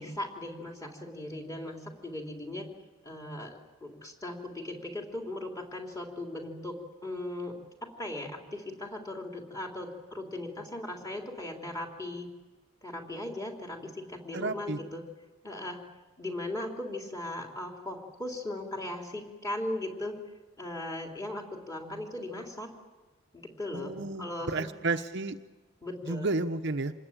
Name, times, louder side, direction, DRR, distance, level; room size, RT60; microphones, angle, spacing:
voice 1, 0.0-2.7 3.0-7.5 7.8-12.3 12.8-15.0 15.4-15.8 16.2-20.2 20.6-22.7 23.3-24.7 25.8-26.3, left 1 dB, 15° left, 1 dB, 3.6 m, -38 dB
voice 2, 14.3-14.8 23.7-25.4 26.1-26.9, right 3 dB, 55° right, 6 dB, 0.9 m, -32 dB
27.0 x 20.5 x 8.9 m, 1.2 s
head